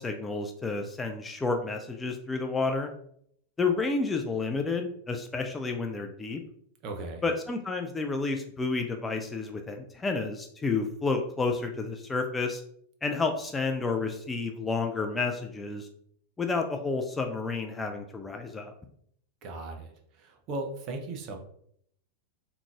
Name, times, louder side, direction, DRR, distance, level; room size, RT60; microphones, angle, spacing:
voice 1, 0.0-2.9 3.6-6.4 7.2-12.6 13.0-15.9 16.4-18.7, left 4 dB, 15° left, 4 dB, 0.4 m, -30 dB
voice 2, 6.8-7.2 19.4-21.4, right 2 dB, 40° right, 3 dB, 0.7 m, -37 dB
3.7 x 2.8 x 2.3 m, 0.67 s
figure-of-eight pair, 90°, 0 cm